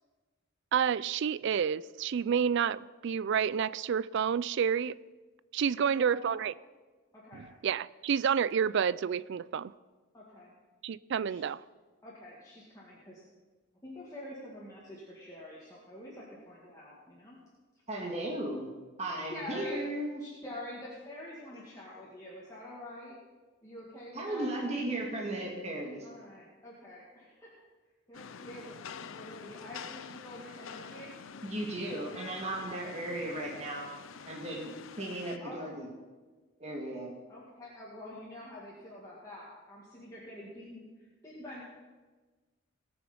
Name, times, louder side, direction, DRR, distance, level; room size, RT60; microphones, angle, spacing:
voice 1, 0.7-5.0 5.5-6.5 7.3-9.7 10.8-11.6, right 7 dB, 60° right, 0.4 m, -29 dB
voice 2, 5.6-6.4 7.1-7.4 10.1-10.5 11.2-11.4 12.0-13.2 13.8-17.4 19.3-19.8 20.2-23.2 23.6-24.7 26.0-27.5 28.1-31.1 33.3-33.7 35.4-35.7 37.3-41.6, left 1 dB, 15° left, 2.2 m, -47 dB
voice 3, 17.9-18.7 19.0-20.2 24.1-26.1 31.4-33.9 34.3-35.9 36.6-37.1, right 1 dB, 30° right, 1.8 m, -36 dB
Rain, 28.1-35.4, left 6 dB, 75° left, 0.5 m, -47 dB
19.5 x 6.9 x 5.2 m
head